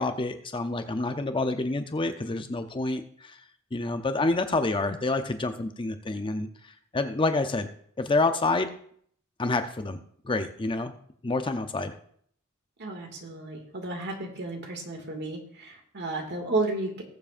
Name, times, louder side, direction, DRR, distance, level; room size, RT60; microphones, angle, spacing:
voice 1, 0.0-3.4 3.7-7.7 8.0-8.7 9.4-10.0 10.2-10.9 11.2-11.9, left 2 dB, 25° left, 8 dB, 0.6 m, -28 dB
voice 2, 12.8-17.0, right 2 dB, 55° right, 2 dB, 2.1 m, -32 dB
19.5 x 7.3 x 2.5 m, 0.62 s
head